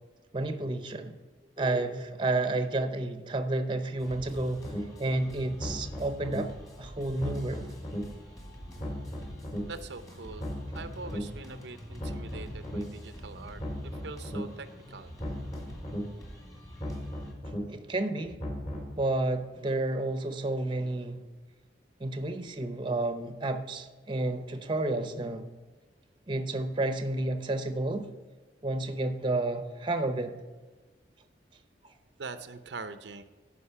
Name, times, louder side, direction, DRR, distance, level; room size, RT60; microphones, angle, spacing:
voice 1, 0.3-1.2 1.6-4.7 5.0-6.5 6.8-7.7 17.7-18.4 19.0-21.2 22.0-25.5 26.3-28.1 28.6-30.3, right 2 dB, 25° right, 0.7 m, -31 dB
sound 1, 4.0-17.3, equal, 20° left, 2.0 m, -47 dB
sound 2, 4.6-4.8 5.4-6.4 7.0-8.0 8.6-9.6 10.2-11.2 11.8-12.8 13.4-14.4 15.0-16.0 16.6-17.6 18.2-18.9, equal, 35° left, 2.4 m, -37 dB
voice 2, 9.7-10.5 10.7-15.1 32.2-33.2, right 4 dB, 75° right, 0.6 m, -43 dB
13.0 x 5.1 x 5.7 m
head